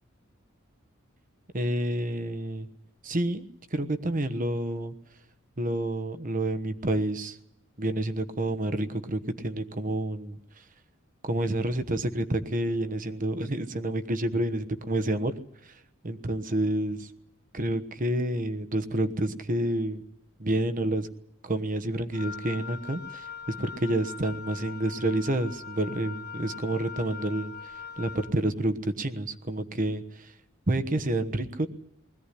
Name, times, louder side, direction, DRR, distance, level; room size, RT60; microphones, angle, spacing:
voice 1, 1.5-2.7 3.0-3.4 3.7-4.9 5.6-7.4 7.8-10.4 11.2-15.4 15.7-15.8 16.0-17.1 17.5-20.0 20.4-21.1 21.4-30.3 30.7-31.7, right 1 dB, 40° right, 10 dB, 1.2 m, -29 dB
Wind instrument woodwind instrument, 22.1-28.4, left 6 dB, 45° left, 1.4 m, -41 dB
20.5 x 16.0 x 10.0 m, 0.85 s
head